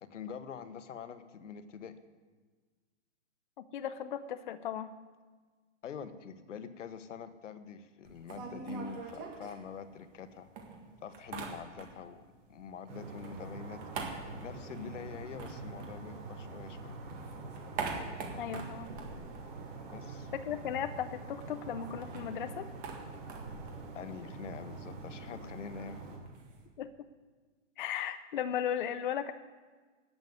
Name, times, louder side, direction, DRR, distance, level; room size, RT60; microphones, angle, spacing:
voice 1, 0.0-1.9 5.8-10.5 11.0-12.2 12.5-13.8 14.4-17.0 19.8-20.3 23.9-26.0, left 6 dB, 75° left, 11 dB, 1.3 m, -45 dB
voice 2, 3.6-4.9 18.4-18.9 20.3-22.7 26.8-26.9 27.8-29.3, left 9 dB, 40° left, 10 dB, 0.6 m, -36 dB
sound 1, 8.0-10.2 10.6-12.2 12.5-16.6 16.9-20.2 20.5-20.6 20.8-26.6, right 4 dB, 20° right, 1.8 m, -44 dB
sound 2, 12.9-26.2, right 3 dB, 50° right, 4.5 m, -45 dB
11.0 x 8.8 x 9.4 m, 1.4 s
hypercardioid pair, 165°, 37 cm